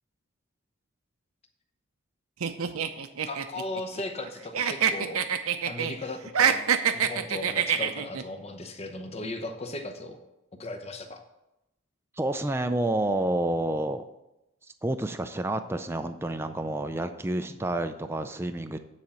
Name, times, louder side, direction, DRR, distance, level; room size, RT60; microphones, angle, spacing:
sound 1, 2.4-4.3 4.5-5.9 6.3-8.2, right 7 dB, 85° right, 0.6 m, -26 dB
voice 1, 3.2-5.2 5.6-6.6 6.9-10.2 10.6-11.2, left 2 dB, 30° left, 6 dB, 0.8 m, -37 dB
voice 2, 12.2-14.1 14.8-18.8, right 1 dB, 10° right, 8 dB, 0.3 m, -29 dB
9.1 x 4.2 x 7.0 m, 0.90 s
head